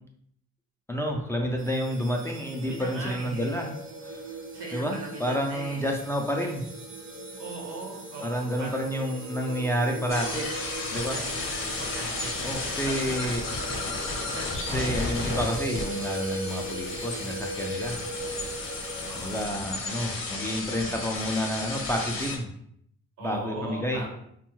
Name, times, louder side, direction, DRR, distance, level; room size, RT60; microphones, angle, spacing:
voice 1, 0.9-3.7 4.0-4.4 4.7-6.6 8.2-10.5 10.9-11.2 12.4-13.4 14.7-18.0 18.5-18.6 19.1-22.5 23.2-24.0, equal, 10° left, 1 dB, 0.3 m, -29 dB
sound 1, 1.6-19.5, right 1 dB, 45° right, 0.6 m, -39 dB
voice 2, 2.6-3.7 4.5-5.9 7.4-8.9 10.9-14.9 19.0-19.5 23.2-24.1, right 2 dB, 80° right, 0 dB, 1.1 m, -40 dB
sound 2, 10.1-22.4, left 2 dB, 45° left, 0.7 m, -33 dB
2.6 x 2.3 x 3.0 m, 0.70 s
cardioid pair, 90°, 30 cm